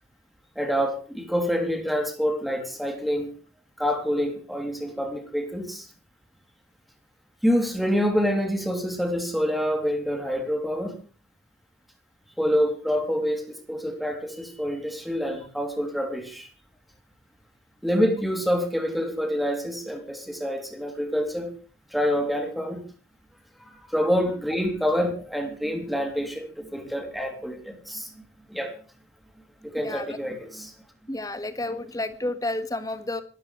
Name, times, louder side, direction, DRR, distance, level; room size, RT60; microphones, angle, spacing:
voice 1, 0.6-3.3 3.8-5.9 7.4-10.9 12.4-16.5 17.8-21.5 21.9-22.8 23.9-28.1 28.5-28.7 29.6-30.7, equal, ahead, 5 dB, 3.0 m, -27 dB
voice 2, 29.8-30.2 31.1-33.2, left 2 dB, 20° left, 10 dB, 1.6 m, -31 dB
25.5 x 13.5 x 3.2 m, 0.37 s
head